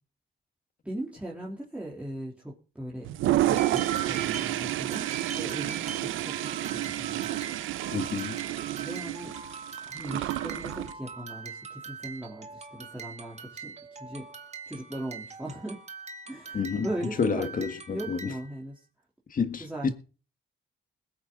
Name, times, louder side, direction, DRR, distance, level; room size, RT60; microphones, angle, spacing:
voice 1, 0.8-3.1 3.4-7.3 8.8-9.4 9.9-13.7 14.0-14.3 14.7-15.8 16.3-18.8 19.6-19.9, right 1 dB, 5° right, 3.5 m, -39 dB
Toilet flush, 3.0-10.9, right 14 dB, 85° right, 0.8 m, -30 dB
sound 1, 3.5-18.6, right 5 dB, 35° right, 1.8 m, -43 dB
voice 2, 7.9-8.4 16.5-16.9 17.2-18.3 19.3-19.9, left 5 dB, 45° left, 1.7 m, -29 dB
21.0 x 8.7 x 4.0 m
cardioid pair, 90°, 20 cm